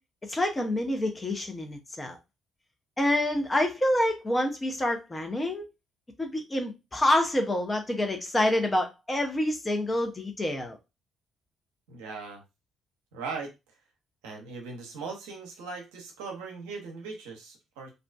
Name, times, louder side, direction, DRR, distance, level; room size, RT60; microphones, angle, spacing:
voice 1, 0.2-2.2 3.0-5.7 6.2-10.8, left 1 dB, 25° left, 0.7 m, -27 dB
voice 2, 11.9-12.4 13.1-13.5 14.2-17.9, right 4 dB, 70° right, 0.6 m, -39 dB
2.4 x 2.2 x 2.3 m
figure-of-eight pair, 45°, 0 cm